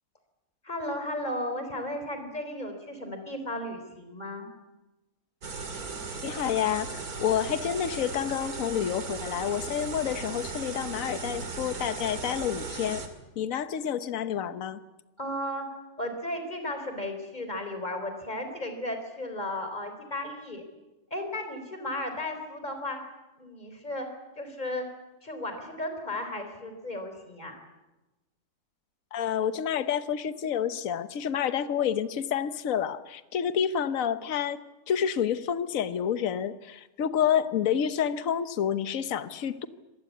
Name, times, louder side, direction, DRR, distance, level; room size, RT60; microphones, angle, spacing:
voice 1, 0.6-4.5 15.2-15.7 16.0-20.6 21.1-23.0 23.4-24.1 24.4-24.9 25.2-27.6, left 1 dB, 25° left, 6 dB, 4.1 m, -34 dB
sound 1, 5.4-13.1, right 4 dB, 65° right, 2.7 m, -37 dB
voice 2, 6.2-13.0 13.4-14.8 29.1-34.6 34.9-39.7, left 9 dB, 60° left, 13 dB, 1.4 m, -29 dB
25.5 x 19.5 x 8.5 m, 1.0 s
omnidirectional pair, 1.7 m